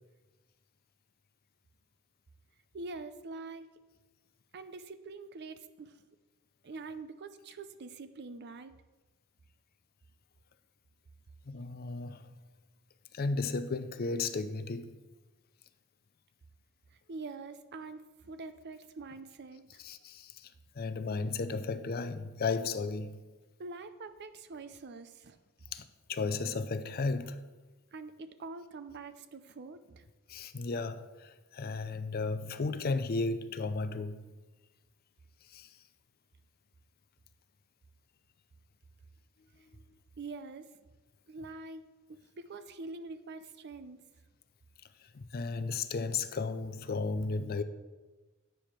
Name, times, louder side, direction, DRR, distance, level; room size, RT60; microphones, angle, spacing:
voice 1, 2.7-3.7 4.5-6.0 6.6-8.8 16.9-19.8 23.6-25.4 27.9-30.0 40.2-40.7 41.3-44.1, right 3 dB, 50° right, 0.5 m, -45 dB
voice 2, 11.5-12.3 13.1-14.9 19.8-20.5 20.8-23.2 25.7-27.4 30.3-34.2 35.5-35.7 45.1-47.6, left 4 dB, 45° left, 0.5 m, -34 dB
9.1 x 5.0 x 5.9 m
head